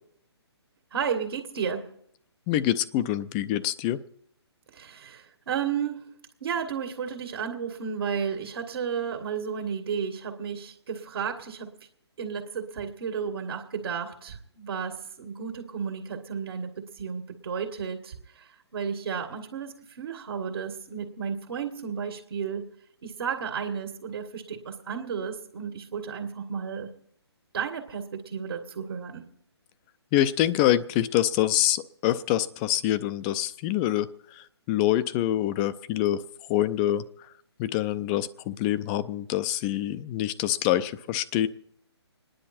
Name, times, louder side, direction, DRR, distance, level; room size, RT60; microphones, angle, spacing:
voice 1, 0.9-1.9 4.7-6.1 6.4-11.7 12.2-22.7 23.0-26.9 27.5-29.3, right 7 dB, 55° right, 4 dB, 1.8 m, -33 dB
voice 2, 2.5-4.0 30.1-36.2 36.5-37.3 37.6-41.5, left 13 dB, 20° left, 14 dB, 0.5 m, -26 dB
27.0 x 10.0 x 4.3 m, 0.73 s
hypercardioid pair, 145°, 14 cm